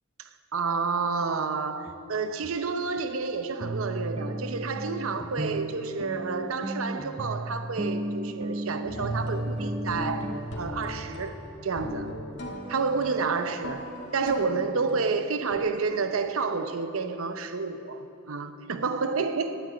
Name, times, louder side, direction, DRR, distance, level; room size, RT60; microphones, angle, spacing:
voice 1, 0.2-11.4 11.6-12.1 12.7-19.6, right 4 dB, 85° right, 9 dB, 0.7 m, -30 dB
sound 1, 1.9-2.0 2.4-2.5 3.0-3.1 3.6-10.4, right 1 dB, 30° right, 0.5 m, -34 dB
sound 2, 8.8-15.6, left 1 dB, 65° left, 1.5 m, -39 dB
9.9 x 9.0 x 8.1 m, 2.6 s
head